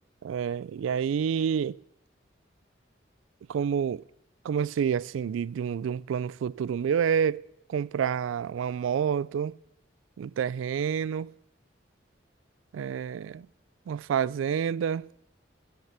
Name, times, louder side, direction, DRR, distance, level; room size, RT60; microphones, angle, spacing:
voice 1, 0.2-1.8 3.5-4.0 4.4-9.6 10.2-11.3 12.7-13.5 13.9-15.1, right 7 dB, 90° right, 0.3 m, -28 dB
13.5 x 6.6 x 6.7 m
head